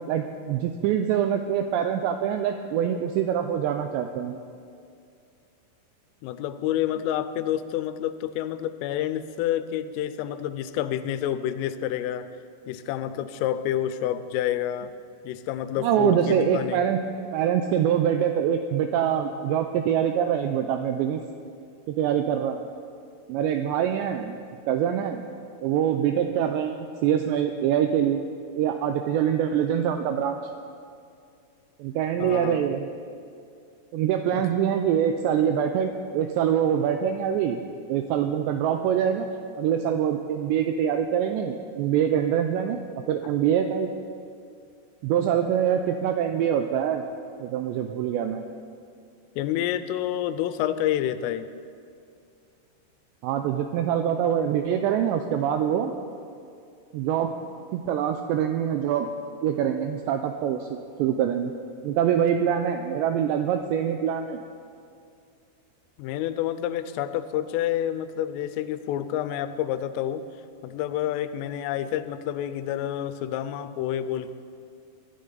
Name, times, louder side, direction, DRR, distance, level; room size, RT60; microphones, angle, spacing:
voice 1, 0.1-4.4 15.8-17.0 17.3-21.2 21.9-22.7 23.3-24.4 24.7-25.2 25.6-28.2 28.5-30.4 31.8-32.9 33.9-37.6 37.9-39.3 39.6-43.9 45.0-47.0 47.4-48.4 53.2-55.9 56.9-57.4 57.7-59.1 59.4-61.5 61.8-64.4, right 9 dB, 90° right, 6 dB, 2.5 m, -24 dB
voice 2, 6.2-12.3 12.7-14.9 15.2-16.8 32.2-32.8 34.3-34.4 42.7-42.8 49.4-51.5 66.0-70.2 70.6-74.3, left 11 dB, 90° left, 12 dB, 3.2 m, -28 dB
22.5 x 12.0 x 4.0 m, 2.4 s
omnidirectional pair, 5.7 m